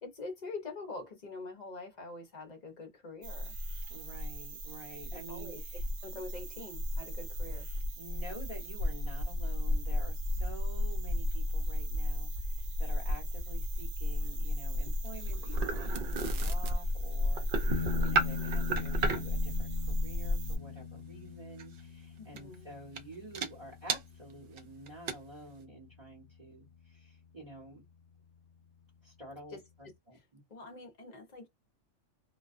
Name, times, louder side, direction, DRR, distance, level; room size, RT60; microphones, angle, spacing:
voice 1, 0.0-3.6 5.1-5.6 6.0-7.7 22.2-22.7 29.5-29.6 30.1-30.2 30.5-31.5, left 3 dB, 45° left, 0.7 m, -45 dB
sound 1, 3.2-20.6, left 1 dB, 80° right, 0.9 m, -33 dB
voice 2, 3.9-5.9 6.1-6.2 8.0-27.8 29.0-30.4, right 1 dB, 30° right, 0.9 m, -49 dB
sound 2, 14.8-19.4 21.6-21.8 22.4-22.6 23.0-23.1 23.3-23.5 23.9-24.0 24.6-24.7 24.9-25.1, right 4 dB, 55° right, 0.6 m, -34 dB
sound 3, 17.7-26.7, left 6 dB, 75° left, 0.9 m, -42 dB
2.3 x 2.2 x 2.4 m
omnidirectional pair, 1.3 m